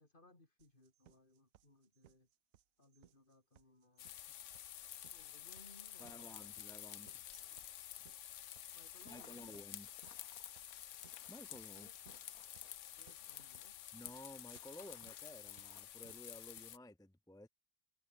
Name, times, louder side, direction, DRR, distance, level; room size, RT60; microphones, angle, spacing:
voice 1, 0.0-2.3 2.8-4.1 5.1-6.7 7.2-7.7 8.7-9.6 11.7-12.0 13.0-13.8, left 2 dB, 35° left, 3.8 m, -65 dB
sound 1, 0.6-16.6, right 11 dB, 75° right, 1.2 m, -67 dB
sound 2, 4.0-16.8, left 11 dB, 65° left, 1.0 m, -51 dB
voice 2, 6.0-7.2 9.1-9.9 11.3-11.9 13.9-17.5, left 1 dB, 5° left, 0.4 m, -54 dB
sound 3, 8.9-15.8, left 4 dB, 90° left, 3.7 m, -66 dB
omnidirectional pair, 1.5 m